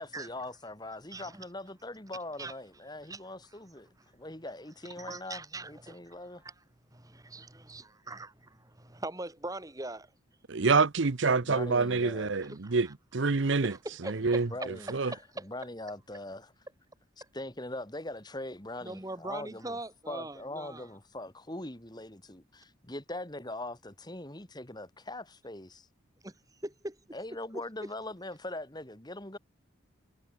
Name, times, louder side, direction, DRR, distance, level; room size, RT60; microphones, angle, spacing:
voice 1, 0.0-6.4 11.4-12.5 14.5-16.5 17.3-19.8 20.1-25.9 27.1-29.4, left 1 dB, 20° left, 2.4 m, -41 dB
voice 2, 1.1-1.4 2.4-2.5 3.1-3.2 5.0-6.2 6.4-6.5 6.9-10.1 12.5-12.9 13.6-15.5 18.8-20.9 26.2-26.4 26.6-27.0 27.5-27.6, right 2 dB, 15° right, 2.0 m, -41 dB
voice 3, 10.5-12.9 13.1-13.7 14.0-15.1, right 4 dB, 65° right, 0.8 m, -27 dB
head